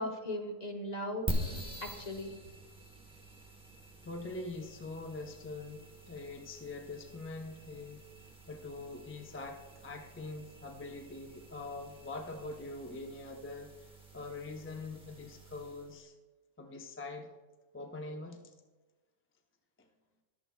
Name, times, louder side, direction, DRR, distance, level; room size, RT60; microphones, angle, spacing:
voice 1, 0.0-2.4, left 1 dB, 35° left, 2 dB, 0.8 m, -39 dB
sound 1, 1.3-16.0, equal, 5° right, 0.9 m, -45 dB
voice 2, 4.0-8.0 8.5-13.9 14.1-16.1 16.6-17.3 17.7-18.4, left 3 dB, 20° left, 3 dB, 0.4 m, -43 dB
21.0 x 7.1 x 2.3 m, 1.3 s
omnidirectional pair, 1.5 m